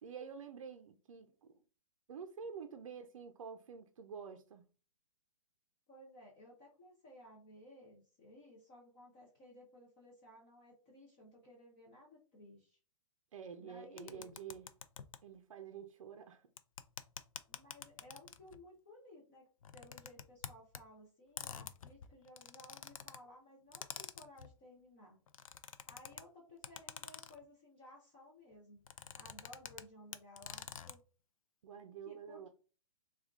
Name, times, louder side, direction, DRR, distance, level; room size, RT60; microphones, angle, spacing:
voice 1, 0.0-1.6 2.1-4.7 13.3-14.7 15.2-16.5 31.6-32.5, right 6 dB, 75° right, 0.5 m, -49 dB
voice 2, 5.9-12.8 13.6-14.3 17.5-25.2 25.9-28.8 29.2-31.0 32.1-32.5, left 1 dB, 15° left, 0.5 m, -58 dB
sound 1, 14.0-15.2 16.6-18.6 19.6-20.8 21.4-23.2 23.7-24.5 25.3-26.2 26.6-27.4 28.8-29.8 30.1-30.9, left 8 dB, 80° left, 0.4 m, -47 dB
3.5 x 2.3 x 3.5 m
hypercardioid pair, 175°, 17 cm